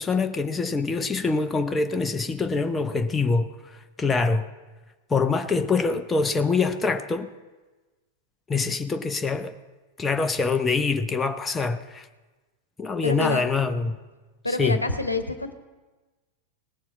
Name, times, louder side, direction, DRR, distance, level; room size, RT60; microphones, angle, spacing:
voice 1, 0.0-4.5 5.1-7.3 8.5-9.6 10.0-12.1 12.8-14.0 14.5-14.8, left 4 dB, 15° left, 0.6 m, -25 dB
voice 2, 13.0-13.4 14.4-15.5, left 2 dB, 85° left, 0.9 m, -27 dB
18.0 x 7.2 x 7.4 m
figure-of-eight pair, 90°, 0 cm